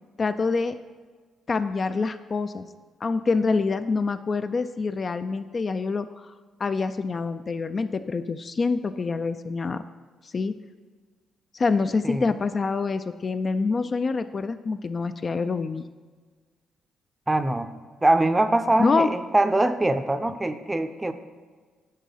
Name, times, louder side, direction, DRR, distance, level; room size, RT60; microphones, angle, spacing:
voice 1, 0.2-0.7 1.5-2.7 3.0-6.3 6.6-9.8 10.3-10.6 11.5-15.9 18.8-19.1, left 4 dB, 40° left, 10 dB, 0.3 m, -26 dB
voice 2, 17.3-17.7 18.0-21.1, right 2 dB, 15° right, 9 dB, 0.5 m, -23 dB
10.0 x 3.7 x 5.6 m, 1.5 s
cardioid pair, 90°, 0 cm